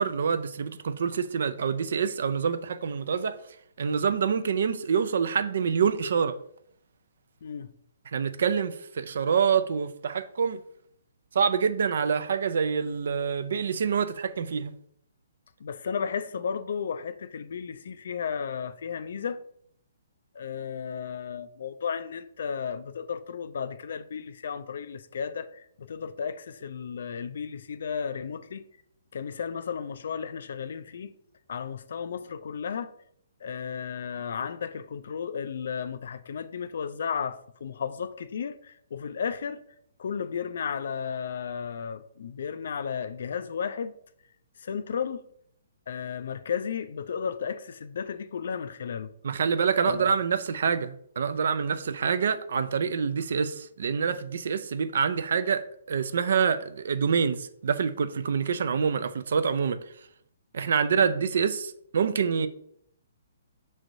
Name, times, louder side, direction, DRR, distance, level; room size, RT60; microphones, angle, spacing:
voice 1, 0.0-3.4 3.8-6.3 8.1-10.6 11.3-14.7 49.2-55.6 55.9-59.8 60.5-62.5, right 6 dB, 65° right, 0.4 m, -26 dB
voice 2, 7.4-7.7 15.6-19.4 20.3-28.6 29.1-31.1 31.5-32.9 33.4-39.6 40.0-43.9 44.6-45.3 45.9-49.1 49.8-50.1 61.0-61.2, left 7 dB, 65° left, 0.3 m, -34 dB
6.2 x 3.1 x 2.6 m
hypercardioid pair, 145°, 0 cm